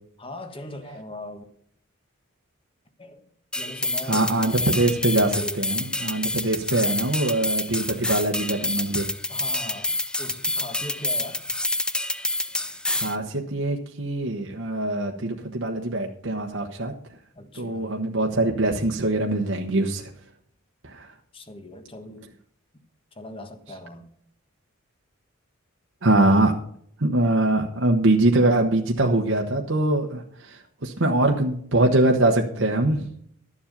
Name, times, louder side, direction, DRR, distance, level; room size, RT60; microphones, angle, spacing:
voice 1, 0.2-1.4 3.0-3.3 3.5-4.6 5.4-5.6 9.3-11.4 17.3-17.9 21.3-22.4 23.1-24.1, left 1 dB, 25° left, 1.4 m, -39 dB
sound 1, 3.5-13.2, left 2 dB, 5° left, 0.4 m, -28 dB
voice 2, 4.1-9.1 12.9-16.9 17.5-20.1 20.8-21.1 26.0-26.5 27.0-33.1, right 2 dB, 60° right, 1.1 m, -23 dB
12.5 x 7.4 x 5.2 m
head